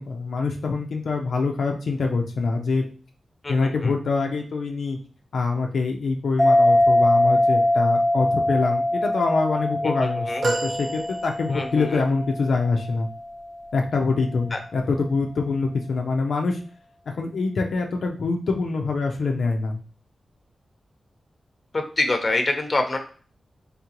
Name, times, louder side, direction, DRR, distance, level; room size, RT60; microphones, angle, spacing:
voice 1, 0.0-2.8 3.5-5.0 5.3-13.1 13.7-16.6 17.1-19.8, left 4 dB, 80° left, 1 dB, 0.5 m, -25 dB
voice 2, 3.4-3.9 9.8-10.4 11.5-12.0 14.5-14.6 21.7-23.0, left 2 dB, 35° left, 5 dB, 0.9 m, -26 dB
sound 1, 6.4-13.4, left 1 dB, 20° right, 0.9 m, -22 dB
sound 2, 10.4-11.8 12.6-12.7, right 3 dB, 70° right, 1.0 m, -29 dB
3.7 x 3.5 x 2.9 m, 0.40 s
cardioid pair, 70°, 0 cm